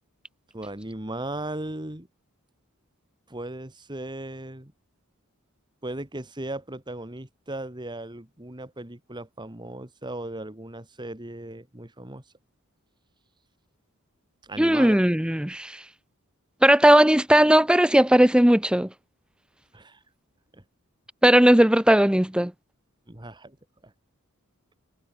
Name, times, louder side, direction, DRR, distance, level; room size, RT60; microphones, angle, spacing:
voice 1, 0.5-2.1 3.3-4.7 5.8-12.2 14.4-15.0 19.7-20.0 20.5-20.6 23.1-23.6 23.8-23.9, right 1 dB, 20° right, 2.1 m, -37 dB
voice 2, 14.6-15.8 16.6-18.9 21.2-22.5, right 1 dB, 5° right, 0.7 m, -18 dB
head